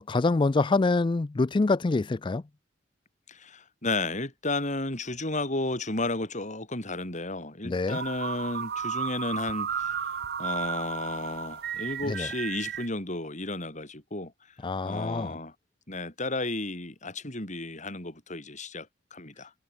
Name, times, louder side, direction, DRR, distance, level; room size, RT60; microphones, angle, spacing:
voice 1, 0.0-2.4 7.6-8.0 12.1-12.3 14.6-15.4, left 3 dB, 25° left, 0.4 m, -25 dB
voice 2, 3.3-14.3 14.8-15.5 15.9-19.5, left 2 dB, 40° left, 7.3 m, -33 dB
sound 1, 7.9-12.9, right 7 dB, 60° right, 0.8 m, -34 dB
head